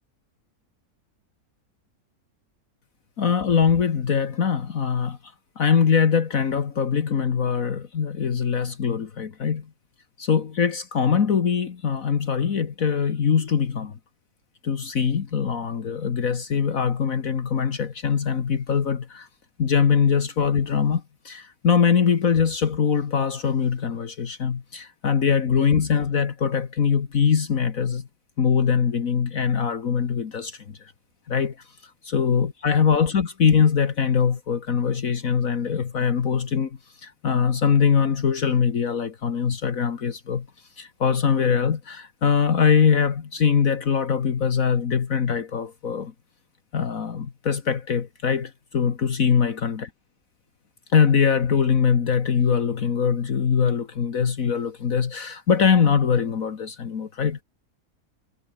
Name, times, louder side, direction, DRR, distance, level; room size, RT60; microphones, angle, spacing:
voice 1, 3.2-5.2 5.6-9.7 10.2-14.0 14.6-19.3 19.6-28.1 28.4-30.9 31.3-31.6 32.0-40.5 40.8-46.1 46.7-49.9 50.9-57.4, left 6 dB, 60° left, 1.9 m, -22 dB
omnidirectional pair, 1.6 m